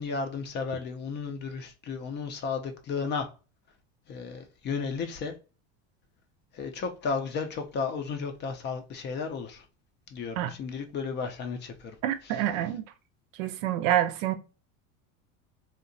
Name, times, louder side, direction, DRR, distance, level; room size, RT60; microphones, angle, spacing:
voice 1, 0.0-3.3 4.1-5.4 6.5-9.7 10.1-12.0 12.2-12.4, left 5 dB, 30° left, 0.4 m, -33 dB
voice 2, 12.0-12.9 13.4-14.4, right 12 dB, 80° right, 0.5 m, -27 dB
2.7 x 2.1 x 2.5 m
supercardioid pair, 115°, 39 cm